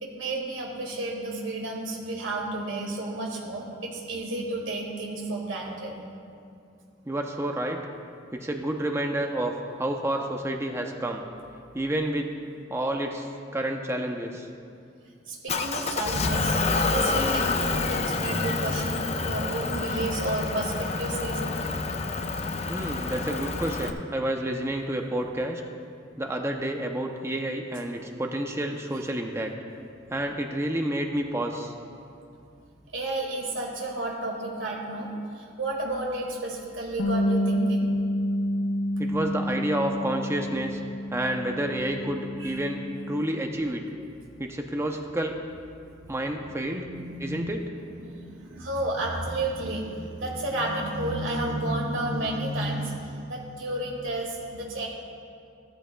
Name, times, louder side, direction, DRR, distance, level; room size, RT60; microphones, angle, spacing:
voice 1, 0.0-6.0 15.3-21.7 32.9-37.9 42.4-42.6 46.2-47.6 47.9-54.9, right 2 dB, 75° right, -1 dB, 1.9 m, -32 dB
voice 2, 7.1-7.8 8.3-11.2 11.7-12.3 12.7-14.5 22.7-25.6 26.2-29.5 30.1-31.7 39.0-40.8 41.1-43.8 44.4-45.3 46.1-46.9 47.2-47.7, right 1 dB, 15° right, 3 dB, 0.6 m, -29 dB
Motor vehicle (road) / Engine, 15.5-23.9, left 3 dB, 35° left, 0.5 m, -28 dB
Bass guitar, 37.0-43.2, equal, 85° left, 0.8 m, -29 dB
15.0 x 13.5 x 2.3 m, 2.4 s
head